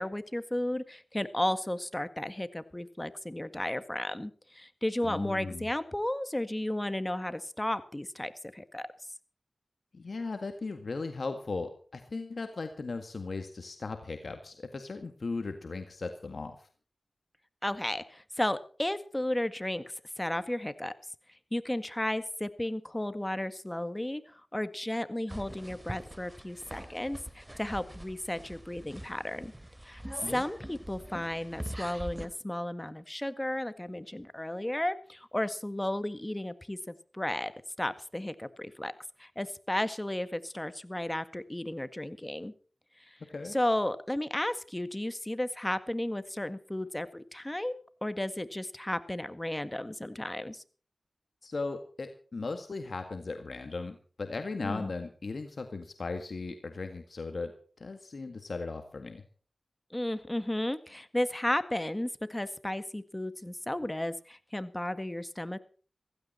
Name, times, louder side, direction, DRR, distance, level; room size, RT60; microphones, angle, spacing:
voice 1, 0.0-8.9 17.6-20.9 21.5-29.5 29.8-30.0 30.3-37.5 37.8-38.9 39.2-42.5 43.0-43.2 43.5-50.6 54.6-54.9 59.9-65.6, left 1 dB, 20° left, 12 dB, 1.7 m, -34 dB
voice 2, 5.0-5.7 9.9-16.7 30.2-30.4 43.3-43.6 51.4-57.5 57.8-59.2, left 3 dB, 70° left, 6 dB, 1.8 m, -37 dB
sound 1, 25.3-32.3, right 1 dB, 15° right, 3.2 m, -44 dB
16.0 x 16.0 x 4.3 m, 0.41 s
cardioid pair, 40°, 0 cm